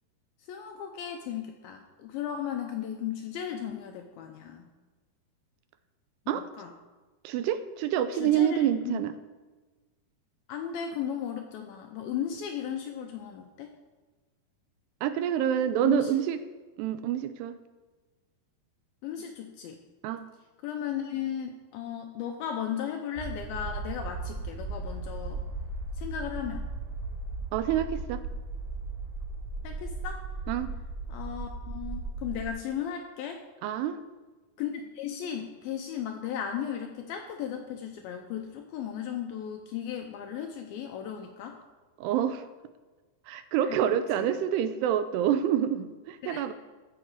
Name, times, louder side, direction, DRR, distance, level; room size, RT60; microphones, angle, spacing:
voice 1, 0.5-4.7 6.3-6.7 8.2-9.0 10.5-13.7 15.8-16.2 19.0-19.8 20.6-25.4 26.0-26.7 29.6-30.2 31.1-33.4 34.6-41.6 43.6-43.8 44.1-44.3 46.2-46.4, left 9 dB, 85° left, 4 dB, 2.2 m, -36 dB
voice 2, 7.2-9.1 15.0-16.4 16.8-17.6 20.0-20.3 27.5-28.2 30.5-30.7 33.6-34.0 42.0-42.5 43.3-46.5, right 10 dB, 85° right, 11 dB, 2.6 m, -27 dB
sound 1, 23.1-32.5, right 3 dB, 60° right, 3.6 m, -36 dB
14.0 x 5.8 x 4.8 m, 1.3 s
omnidirectional pair, 4.9 m